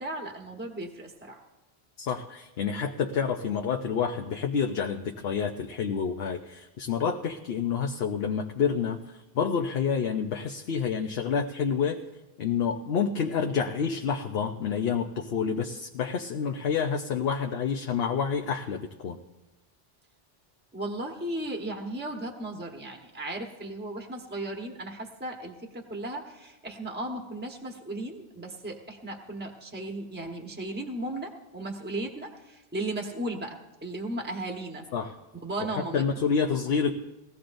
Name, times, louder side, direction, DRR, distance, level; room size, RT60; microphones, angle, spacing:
voice 1, 0.0-1.4 20.7-34.9 35.3-36.0, right 1 dB, 10° right, 1 dB, 1.2 m, -36 dB
voice 2, 2.0-9.0 9.3-12.0 12.4-19.2 34.9-35.1 35.6-36.9, left 6 dB, 75° left, 4 dB, 1.0 m, -28 dB
20.0 x 15.0 x 2.6 m, 1.0 s
omnidirectional pair, 1.1 m